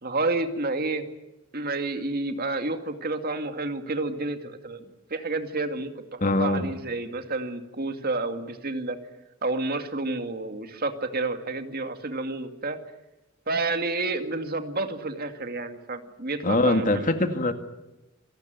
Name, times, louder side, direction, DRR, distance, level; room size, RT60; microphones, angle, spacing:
voice 1, 0.0-1.1 1.5-9.0 9.4-12.8 13.5-17.1, right 2 dB, 50° right, 7 dB, 2.3 m, -30 dB
voice 2, 6.2-6.7 16.4-17.5, left 2 dB, 40° left, 7 dB, 1.9 m, -23 dB
27.5 x 18.5 x 9.3 m, 1.0 s
head